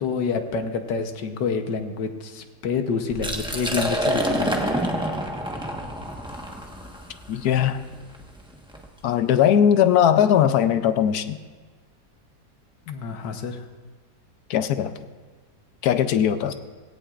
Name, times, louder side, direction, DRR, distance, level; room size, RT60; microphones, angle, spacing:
voice 1, 0.0-5.0 12.9-13.6, left 5 dB, 90° left, 6 dB, 1.6 m, -28 dB
Liquid, 3.1-8.9, equal, 5° right, 0.9 m, -28 dB
voice 2, 7.3-7.8 9.0-11.4 14.5-14.9 15.8-16.5, left 9 dB, 70° left, 10 dB, 1.1 m, -19 dB
18.0 x 17.0 x 2.5 m, 1.4 s
omnidirectional pair, 1.8 m